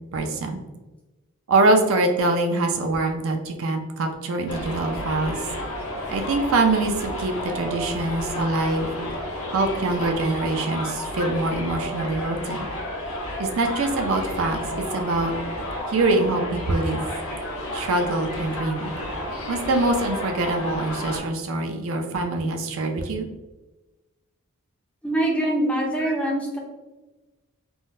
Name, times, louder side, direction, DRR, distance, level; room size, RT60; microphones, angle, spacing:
voice 1, 0.1-0.6 1.5-5.4 6.1-8.9 9.5-12.7 13.4-15.3 15.9-17.0 17.7-18.9 19.5-23.3, right 2 dB, 65° right, 4 dB, 0.4 m, -24 dB
Subway metro underground, 4.5-21.2, left 1 dB, 70° left, 1.0 m, -31 dB
voice 2, 25.0-26.6, right 1 dB, 5° left, -1 dB, 0.4 m, -23 dB
3.7 x 2.1 x 2.5 m, 1.1 s
head